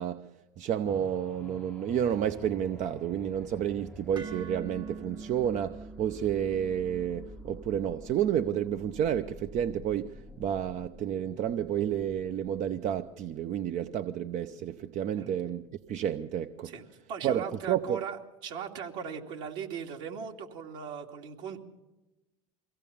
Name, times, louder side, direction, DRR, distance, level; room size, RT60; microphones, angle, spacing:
voice 1, 0.0-16.7 17.2-18.0, right 9 dB, 50° right, 0.8 m, -30 dB
sound 1, 0.9-14.5 15.0-15.1, left 1 dB, 5° left, 0.7 m, -50 dB
sound 2, 4.1-12.3, right 4 dB, 25° right, 1.3 m, -48 dB
voice 2, 17.1-18.2 18.4-21.6, right 7 dB, 70° right, 2.8 m, -38 dB
24.0 x 16.5 x 7.1 m
hypercardioid pair, 85°, 17 cm